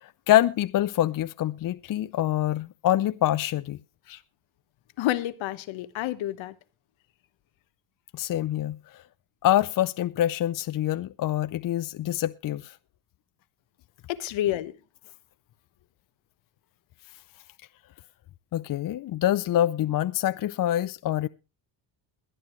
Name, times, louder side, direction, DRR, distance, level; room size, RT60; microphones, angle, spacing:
voice 1, 0.0-3.8 4.1-4.2 8.1-8.8 9.4-12.7 18.5-21.3, left 13 dB, 45° left, 0.6 m, -25 dB
voice 2, 5.0-6.5 14.1-14.7, left 13 dB, 70° left, 1.2 m, -29 dB
22.0 x 9.6 x 3.1 m
cardioid pair, 100°, 47 cm